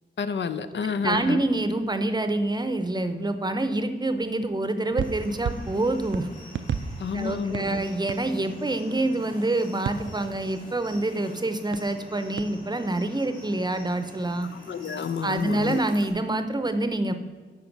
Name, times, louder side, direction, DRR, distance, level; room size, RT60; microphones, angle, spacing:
voice 1, 0.2-1.4 7.0-7.6 14.7-15.8, left 6 dB, 75° left, 11 dB, 0.6 m, -29 dB
voice 2, 1.0-6.3 7.1-14.5 15.2-17.1, right 2 dB, 20° right, 9 dB, 0.7 m, -26 dB
sound 1, 4.9-8.9 9.8-11.0 11.7-12.7, right 7 dB, 85° right, 0.5 m, -35 dB
sound 2, 5.0-16.1, left 1 dB, 45° left, 3.0 m, -45 dB
10.5 x 4.2 x 6.0 m, 1.5 s
wide cardioid pair, 130°, 19 cm